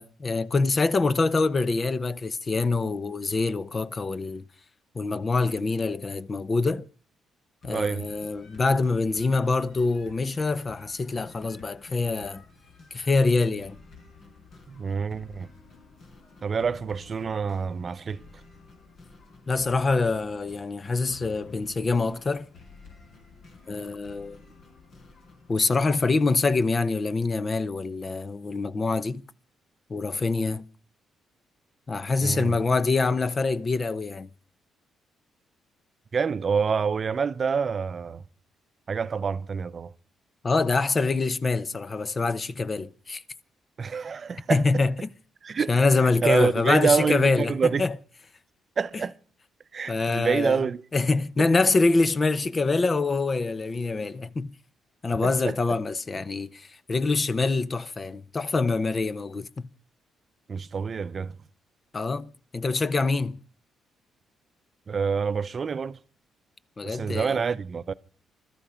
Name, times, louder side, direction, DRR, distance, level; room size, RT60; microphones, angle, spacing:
voice 1, 0.0-4.4 4.9-6.9 7.6-12.4 12.9-13.8 19.5-22.5 23.7-24.4 25.5-29.2 29.9-30.6 31.9-34.3 40.4-43.2 44.5-45.1 45.7-47.5 47.8-47.9 49.9-50.6 50.9-54.5 55.0-59.7 61.9-63.4 66.8-67.4, left 3 dB, 30° left, 0.8 m, -25 dB
sound 1, 7.6-25.6, left 4 dB, 65° left, 4.8 m, -52 dB
voice 2, 7.7-8.1 14.7-15.5 16.4-18.2 32.2-32.6 36.1-38.2 38.9-39.9 43.8-44.6 45.4-45.7 46.2-47.9 48.8-49.1 49.7-50.8 51.4-51.5 55.2-55.6 60.5-61.4 64.9-66.0 66.8-67.9, right 6 dB, 40° right, 0.7 m, -27 dB
21.0 x 13.0 x 5.0 m
cardioid pair, 90°, 0 cm